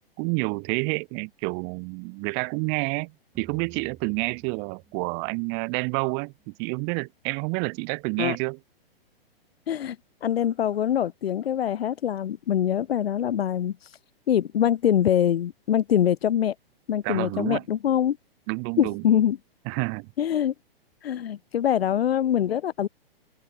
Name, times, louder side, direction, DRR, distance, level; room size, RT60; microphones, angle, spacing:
voice 1, 0.2-3.1 3.4-6.3 6.6-8.6 17.0-17.6 18.5-19.0 19.7-20.1, right 40 dB or more, 35° right, 1.3 m, -28 dB
sound 1, 3.3-6.6, right 8 dB, 20° right, 3.2 m, -54 dB
voice 2, 10.2-13.8 14.3-16.5 16.9-18.2 18.8-19.4 20.2-20.5 21.0-22.9, left 10 dB, 80° left, 0.7 m, -24 dB
hypercardioid pair, 125°, 30 cm